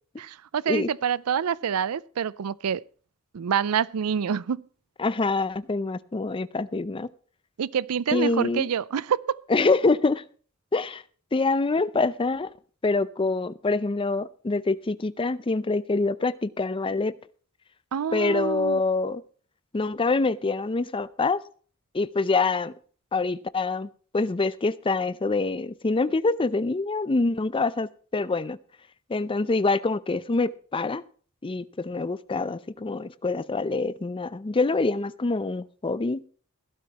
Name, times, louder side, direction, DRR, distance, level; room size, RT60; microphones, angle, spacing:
voice 1, 0.2-2.8 3.3-4.6 7.6-9.4 17.9-18.8, right 7 dB, 90° right, 0.4 m, -27 dB
voice 2, 5.0-7.1 8.1-8.7 9.5-10.2 10.7-11.0 11.3-12.5 12.8-17.2 18.1-19.2 19.7-21.4 21.9-22.7 23.1-23.9 24.1-28.6 29.1-31.0 31.4-36.2, left 3 dB, 25° left, 0.5 m, -25 dB
16.5 x 12.0 x 2.9 m
head